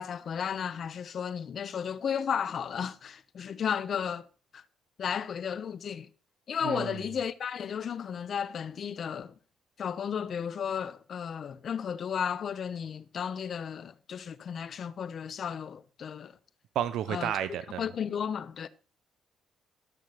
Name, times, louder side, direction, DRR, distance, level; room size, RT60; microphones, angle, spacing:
voice 1, 0.0-4.2 4.5-4.6 5.0-6.1 6.5-9.3 9.8-16.4 17.1-17.3 17.8-18.7, left 7 dB, 55° left, 1.0 m, -34 dB
voice 2, 6.6-7.0 16.7-17.8, right 10 dB, 80° right, 0.7 m, -31 dB
13.5 x 6.1 x 6.6 m
cardioid pair, 90°, 0 cm